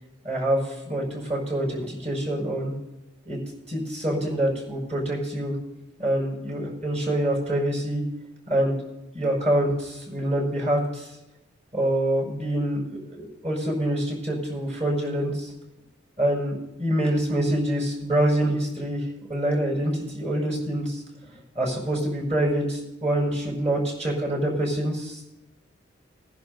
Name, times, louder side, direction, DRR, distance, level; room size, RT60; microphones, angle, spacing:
voice 1, 0.2-2.7 3.3-3.4 3.7-5.6 6.0-8.0 8.5-8.8 9.1-11.1 11.7-15.5 16.2-21.0 21.6-25.2, right 1 dB, 35° right, -2 dB, 5.5 m, -26 dB
23.0 x 10.5 x 2.7 m, 0.94 s
head